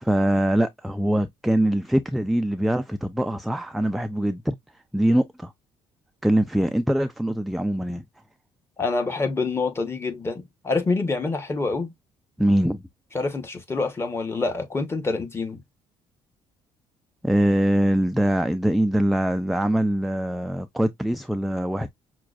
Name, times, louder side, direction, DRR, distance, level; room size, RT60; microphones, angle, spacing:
voice 1, 0.0-4.6 4.9-5.5 6.2-8.0 12.4-12.8 17.2-21.9, right 1 dB, ahead, 0.3 m, -23 dB
voice 2, 8.8-11.9 13.1-15.6, left 3 dB, 20° left, 1.1 m, -26 dB
5.8 x 2.2 x 2.4 m
cardioid pair, 110°, 12 cm